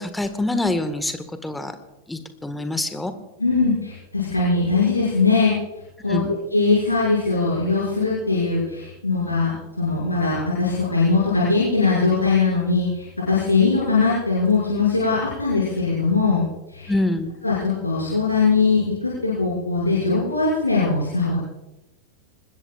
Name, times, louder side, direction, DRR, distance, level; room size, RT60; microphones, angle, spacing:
voice 1, 0.0-1.8 2.1-3.1 6.1-6.3 16.9-17.3, left 2 dB, 5° left, 9 dB, 1.7 m, -25 dB
voice 2, 3.4-5.5 6.0-6.2 6.5-16.4 16.7-16.9 17.4-21.4, left 4 dB, 80° left, -8 dB, 6.3 m, -21 dB
25.0 x 21.0 x 2.5 m, 0.96 s
figure-of-eight pair, 90°, 0 cm